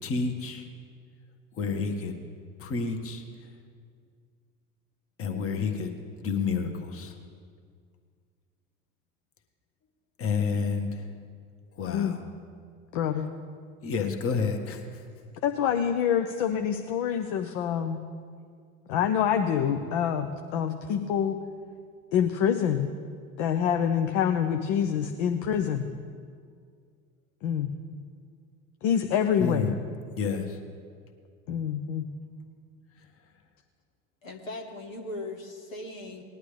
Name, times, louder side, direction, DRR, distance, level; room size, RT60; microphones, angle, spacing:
voice 1, 0.0-0.7 1.5-2.2 2.6-3.2 5.2-7.1 10.2-11.1 11.8-12.2 13.8-14.8 29.4-29.7 30.1-30.6, left 5 dB, 35° left, 5 dB, 1.5 m, -29 dB
voice 2, 12.9-13.3 15.4-18.0 18.9-21.4 22.1-22.9 23.4-25.9 27.4-27.7 28.8-29.8 31.5-32.1, left 8 dB, 55° left, 6 dB, 0.9 m, -26 dB
voice 3, 34.2-36.2, left 2 dB, 80° left, 3 dB, 1.6 m, -39 dB
19.5 x 11.0 x 3.4 m, 2.1 s
figure-of-eight pair, 70°, 40 cm